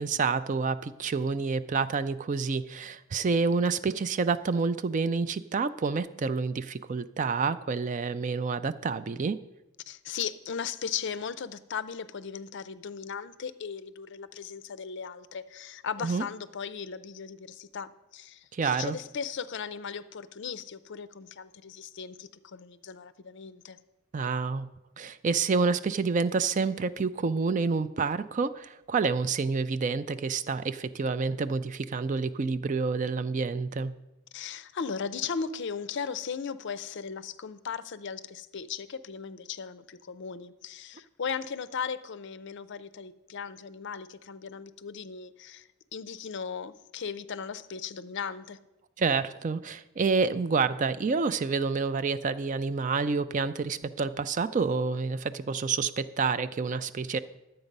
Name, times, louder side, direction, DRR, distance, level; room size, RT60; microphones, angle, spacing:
voice 1, 0.0-9.4 16.0-16.2 18.5-19.0 24.1-24.7 25.0-33.9 49.0-57.2, right 4 dB, 35° right, 13 dB, 0.3 m, -28 dB
voice 2, 9.9-23.8 34.3-48.6, left 6 dB, 55° left, 13 dB, 0.5 m, -37 dB
11.0 x 7.9 x 5.3 m, 0.96 s
head